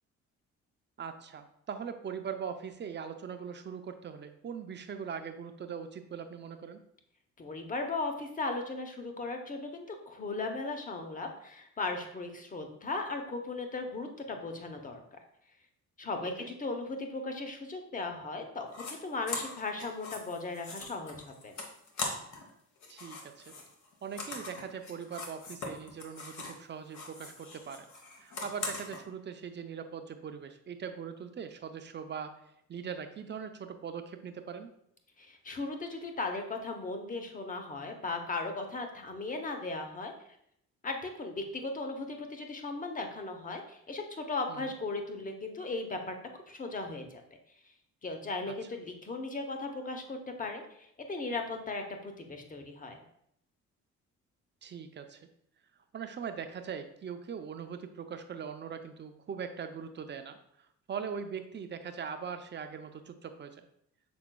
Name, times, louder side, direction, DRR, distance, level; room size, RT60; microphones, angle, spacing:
voice 1, 1.0-6.8 16.2-16.5 22.9-23.5 24.0-27.9 28.2-32.3 32.7-34.7 44.5-44.7 48.5-48.6 54.6-55.3 55.9-60.4 60.9-63.6, right 7 dB, 35° right, 7 dB, 0.5 m, -41 dB
voice 2, 7.4-15.0 16.0-21.5 35.2-40.1 40.8-46.1 46.5-47.2 48.0-53.0, left 3 dB, 25° left, 5 dB, 0.8 m, -37 dB
sound 1, 18.7-18.9 19.3-22.5 22.8-26.6 26.9-29.0, left 3 dB, 70° left, 1.1 m, -41 dB
6.1 x 3.9 x 2.2 m, 0.73 s
cardioid pair, 90°, 30 cm